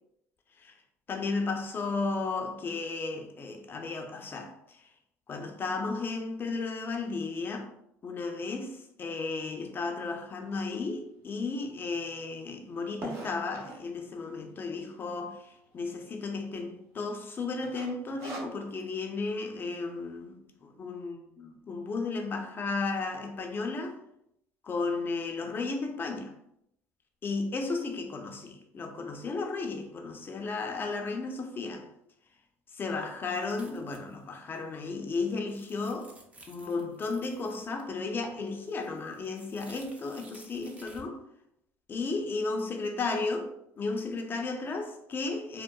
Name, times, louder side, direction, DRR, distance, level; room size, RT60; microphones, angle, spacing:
voice 1, 1.1-4.9 5.3-7.7 8.0-24.0 24.6-26.3 27.2-31.9 32.7-36.2 36.5-41.2 41.9-45.6, left 3 dB, 35° left, 0.6 m, -34 dB
sound 1, 10.5-10.6 11.2-11.3 11.5-11.6 11.8-14.0 14.6-15.0 15.4-15.5 15.7-15.8 16.3-16.7 17.0-17.2 17.6-18.9, right 1 dB, 45° right, 1.1 m, -42 dB
sound 2, 33.4-34.3 34.6-34.7 35.1-37.9 38.2-41.1, right 2 dB, 20° right, 0.6 m, -55 dB
3.6 x 2.0 x 2.2 m
supercardioid pair, 90°, 6 cm